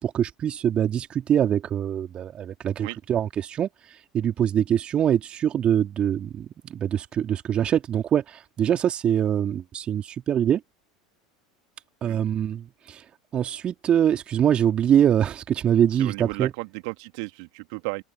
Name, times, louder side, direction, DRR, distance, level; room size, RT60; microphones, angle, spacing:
voice 1, 0.0-3.7 4.1-10.6 12.0-13.0 13.3-16.5, right 9 dB, 35° right, 3.6 m, -24 dB
voice 2, 16.0-18.0, right 33 dB, 55° right, 3.2 m, -34 dB
figure-of-eight pair, 80°, 3 cm